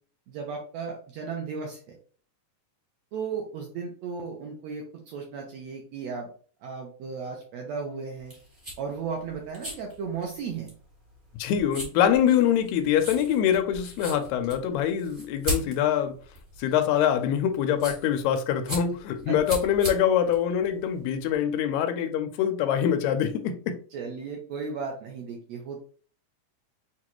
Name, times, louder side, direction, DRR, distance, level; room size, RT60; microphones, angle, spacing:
voice 1, 0.3-2.0 3.1-6.3 6.6-8.3 8.8-10.7 19.3-19.4 23.9-25.9, right 5 dB, 75° right, 1.6 m, -35 dB
sound 1, 8.2-21.3, equal, 35° right, 0.8 m, -38 dB
voice 2, 11.3-16.1 16.6-23.8, left 9 dB, 85° left, 1.6 m, -24 dB
6.6 x 2.3 x 3.0 m
omnidirectional pair, 3.7 m